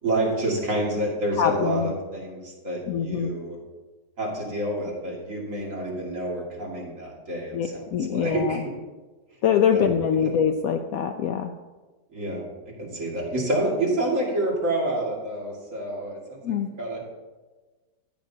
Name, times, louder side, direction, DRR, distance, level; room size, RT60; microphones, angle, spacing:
voice 1, 0.0-3.6 4.2-8.6 9.7-9.9 10.2-10.3 12.1-12.4 12.8-17.0, right 1 dB, 50° right, -3 dB, 2.6 m, -28 dB
voice 2, 1.4-1.9 2.9-3.3 7.5-8.6 9.4-11.5 16.4-16.7, left 8 dB, 70° left, 6 dB, 0.9 m, -24 dB
14.5 x 8.2 x 2.8 m, 1.3 s
omnidirectional pair, 1.8 m